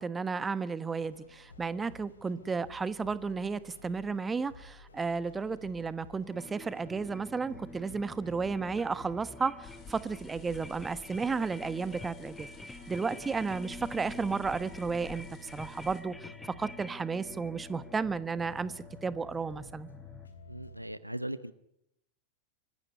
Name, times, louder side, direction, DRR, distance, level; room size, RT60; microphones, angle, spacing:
voice 1, 0.0-12.5 12.9-15.3 15.5-19.9, right 4 dB, 15° right, 16 dB, 1.1 m, -33 dB
sound 1, 1.0-20.9, left 3 dB, 75° left, 3.3 m, -53 dB
sound 2, 6.3-20.3, left 2 dB, 5° left, 1.4 m, -48 dB
sound 3, 9.6-16.0, left 7 dB, 30° left, 4.0 m, -53 dB
voice 2, 20.5-21.5, right 1 dB, 90° right, 15 dB, 0.9 m, -38 dB
25.5 x 15.5 x 9.6 m, 0.79 s
figure-of-eight pair, 90°, 0 cm